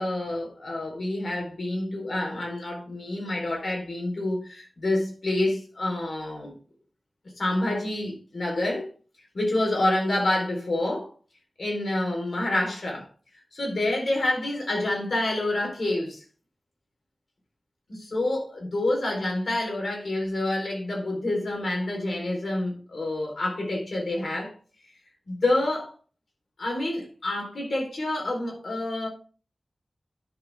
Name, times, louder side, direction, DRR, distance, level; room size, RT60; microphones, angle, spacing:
voice 1, 0.0-6.5 7.4-8.9 9.3-11.1 11.6-13.1 13.5-16.2 17.9-24.6 25.3-25.9 26.6-29.1, left 1 dB, 80° left, 4.0 m, -28 dB
10.5 x 6.9 x 3.6 m
wide cardioid pair, 90°, 0 cm